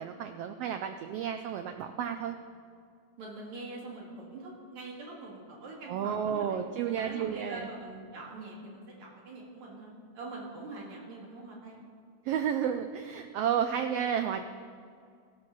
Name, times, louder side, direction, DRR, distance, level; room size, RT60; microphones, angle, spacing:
voice 1, 0.0-2.4 5.9-7.7 12.2-14.4, right 8 dB, 90° right, 7 dB, 1.3 m, -32 dB
voice 2, 3.2-6.6 7.0-11.9, right 2 dB, 70° right, -3 dB, 3.5 m, -44 dB
15.5 x 6.4 x 6.0 m, 2.2 s
omnidirectional pair, 3.3 m